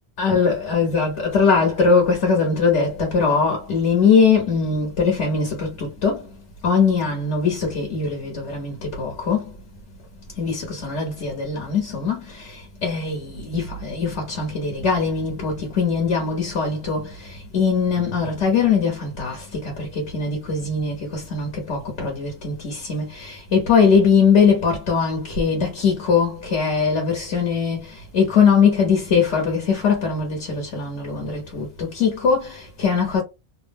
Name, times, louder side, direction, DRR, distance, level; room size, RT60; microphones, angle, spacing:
voice 1, 0.2-6.3 6.6-9.5 10.4-33.2, left 5 dB, 70° left, 1.2 m, -21 dB
3.0 x 2.0 x 3.4 m
omnidirectional pair, 1.2 m